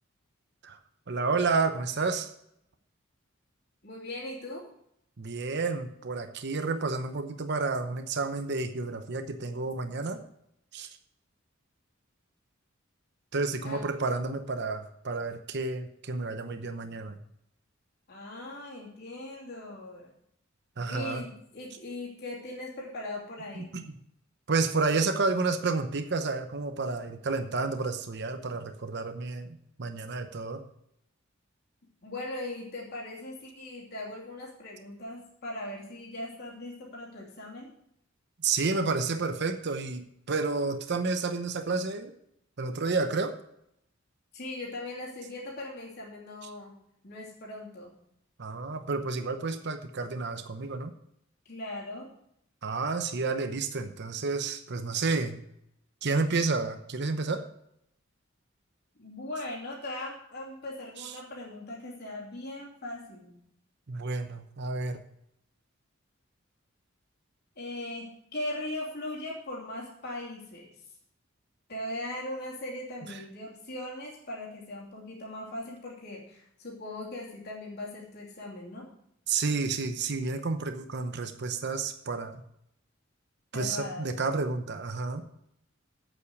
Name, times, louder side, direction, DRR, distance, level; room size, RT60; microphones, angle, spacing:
voice 1, 1.1-2.3 5.2-10.2 10.7-10.9 13.3-17.2 20.8-21.2 23.5-23.8 24.5-30.6 38.4-42.1 42.6-43.4 46.4-46.5 48.4-50.9 52.6-55.4 56.0-57.4 61.0-61.1 63.9-65.0 73.1-73.2 79.3-82.4 83.5-85.2, right 4 dB, 60° right, 8 dB, 0.8 m, -30 dB
voice 2, 3.8-4.6 13.6-13.8 18.1-20.1 20.8-23.7 32.0-37.7 44.3-46.7 47.0-47.9 51.4-52.1 59.0-63.4 67.6-70.7 71.7-78.9 83.5-84.1, left 1 dB, 55° left, -4 dB, 2.9 m, -39 dB
8.5 x 7.5 x 6.8 m, 0.74 s
head